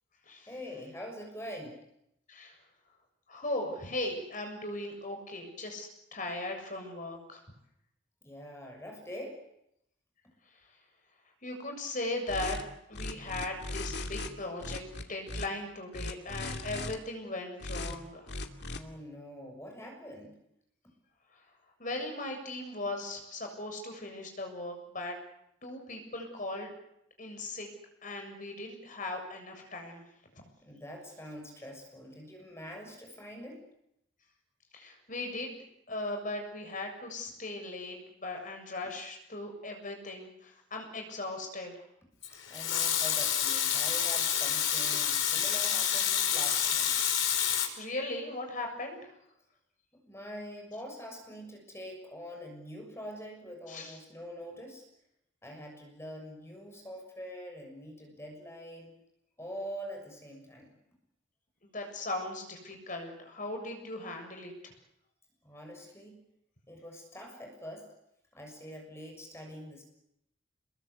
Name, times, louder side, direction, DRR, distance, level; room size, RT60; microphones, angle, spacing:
voice 1, 0.5-1.8 8.2-9.4 18.7-20.4 30.6-33.6 42.5-47.0 50.1-54.8 55.4-58.9 59.4-60.7 65.4-66.2 66.7-67.9 68.3-69.8, equal, 15° left, 2 dB, 6.7 m, -44 dB
voice 2, 3.3-7.4 11.4-12.6 12.9-18.3 21.8-25.2 25.6-26.7 27.2-27.7 28.0-30.0 30.3-30.4 34.7-35.6 35.9-41.8 47.8-49.1 53.7-54.0 61.6-64.7, left 2 dB, 40° left, 4 dB, 7.1 m, -38 dB
sound 1, 12.3-12.6 12.9-14.3 14.6-15.5 15.9-17.0 17.6-18.0 18.3-18.8, left 2 dB, 55° left, 2.6 m, -37 dB
Water tap faucet / Sink (filling or washing) / Liquid, 42.2-47.7, left 9 dB, 75° left, 5.0 m, -28 dB
27.5 x 22.5 x 8.4 m, 0.79 s
head